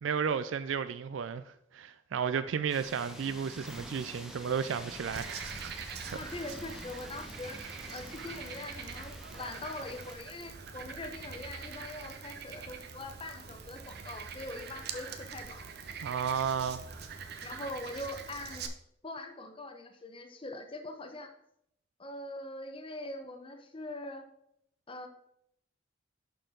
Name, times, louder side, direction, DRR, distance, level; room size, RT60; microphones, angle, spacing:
voice 1, 0.0-5.7 16.0-16.8 17.3-17.5, right 7 dB, 80° right, 0.4 m, -33 dB
sound 1, 2.7-10.2, equal, 5° right, 0.9 m, -47 dB
Frog, 5.1-18.7, right 5 dB, 55° right, 0.7 m, -44 dB
voice 2, 6.1-7.6 7.9-15.7 17.4-18.7 19.0-21.3 22.0-24.3 24.9-25.1, left 2 dB, 30° left, 0.8 m, -42 dB
11.5 x 4.5 x 3.8 m
head